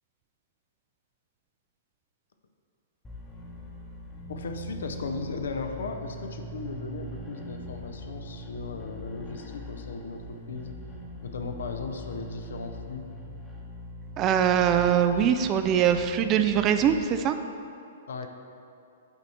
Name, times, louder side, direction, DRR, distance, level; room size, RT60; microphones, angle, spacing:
sound 1, 3.0-17.1, equal, 15° left, 1.0 m, -41 dB
voice 1, 4.3-10.7 11.2-13.1 18.1-18.3, left 4 dB, 65° left, 5 dB, 0.6 m, -36 dB
voice 2, 14.2-17.4, right 9 dB, 30° right, 8 dB, 0.3 m, -22 dB
8.0 x 4.1 x 4.2 m, 2.6 s
figure-of-eight pair, 115°, 0 cm